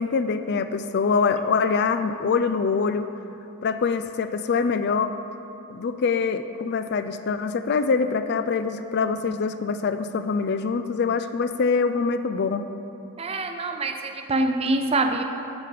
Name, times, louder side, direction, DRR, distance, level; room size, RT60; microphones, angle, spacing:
voice 1, 0.0-3.1 3.6-5.1 5.7-12.6, left 5 dB, 50° left, 10 dB, 0.4 m, -24 dB
voice 2, 13.2-15.2, right 2 dB, 25° right, 6 dB, 0.5 m, -25 dB
14.0 x 5.1 x 5.8 m, 3.0 s
head